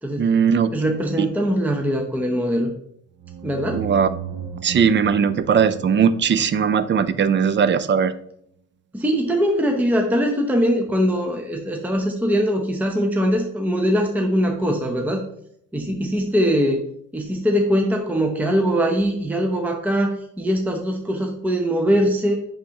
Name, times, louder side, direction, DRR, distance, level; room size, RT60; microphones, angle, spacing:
voice 1, 0.2-0.7 3.7-4.1 4.6-8.1, right 7 dB, 40° right, 14 dB, 0.5 m, -19 dB
voice 2, 0.7-2.7 3.4-3.9 8.9-15.2 15.7-16.8 17.1-22.4, equal, 5° right, 2 dB, 0.7 m, -21 dB
sound 1, 3.2-7.7, right 8 dB, 75° right, 0.8 m, -36 dB
9.5 x 3.7 x 2.9 m, 0.71 s
cardioid pair, 90°, 30 cm